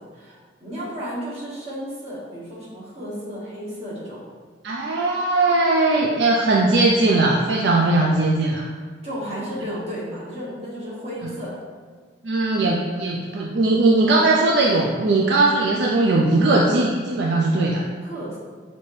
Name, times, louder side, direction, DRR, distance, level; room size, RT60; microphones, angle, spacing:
voice 1, 0.0-4.2 9.0-11.5 18.0-18.4, equal, 35° right, -8 dB, 1.5 m, -33 dB
voice 2, 4.6-8.6 12.2-17.8, right 2 dB, 70° right, -1 dB, 0.4 m, -19 dB
6.0 x 2.8 x 3.2 m, 1.5 s
head